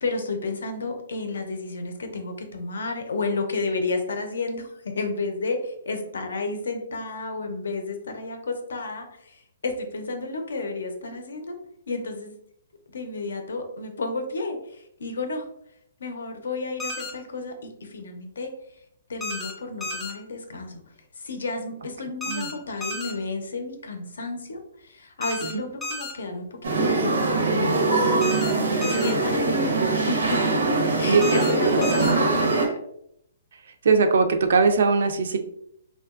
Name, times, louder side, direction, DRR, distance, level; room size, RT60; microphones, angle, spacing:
voice 1, 0.0-11.6 11.9-12.3 12.9-15.5 16.0-18.5 19.1-20.8 21.2-29.7 30.1-32.8, left 3 dB, 90° left, 5 dB, 0.6 m, -31 dB
sound 1, 16.8-17.1 19.2-19.5 19.8-20.1 22.2-22.5 22.8-23.1 25.2-25.5 25.8-26.1 28.2-28.5 28.8-29.1 31.2-31.5 31.8-32.1, left 2 dB, 5° left, 0.4 m, -32 dB
sound 2, 26.6-32.7, right 3 dB, 85° right, 0.7 m, -22 dB
voice 2, 31.0-31.8 33.8-35.4, right 4 dB, 65° right, 7 dB, 0.3 m, -21 dB
2.8 x 2.3 x 2.3 m, 0.73 s
hypercardioid pair, 165°, 0 cm